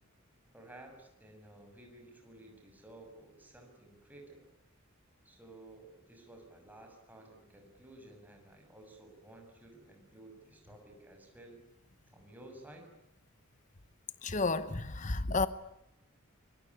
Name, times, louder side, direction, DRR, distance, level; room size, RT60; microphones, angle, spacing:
voice 1, 0.5-4.5 5.3-11.6 12.1-12.9, right 1 dB, 10° right, 6.8 m, -54 dB
voice 2, 14.2-15.5, left 3 dB, 35° left, 1.0 m, -31 dB
24.5 x 23.5 x 9.8 m
head